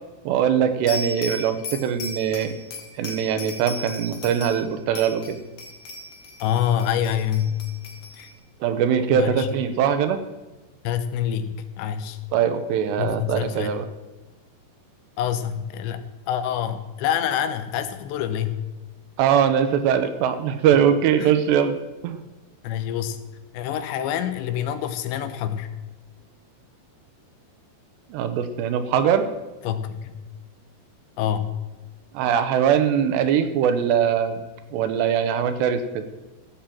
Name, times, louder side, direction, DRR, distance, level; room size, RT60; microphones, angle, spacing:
voice 1, 0.3-2.5 3.0-5.4 8.6-10.2 12.3-13.9 19.2-21.8 22.0-22.2 28.1-29.3 32.1-34.4 34.7-36.1, right 8 dB, 80° right, 9 dB, 3.1 m, -21 dB
sound 1, 0.9-4.7 5.0-8.3, left 2 dB, 60° left, 3.0 m, -37 dB
voice 2, 6.4-7.6 8.2-8.3 9.1-9.5 10.8-12.2 13.0-13.8 15.2-18.6 21.2-21.3 22.6-23.2 23.5-25.7 29.6-30.2 31.2-31.5, left 9 dB, 90° left, 10 dB, 3.1 m, -26 dB
16.0 x 7.3 x 7.6 m, 1.2 s
omnidirectional pair, 5.0 m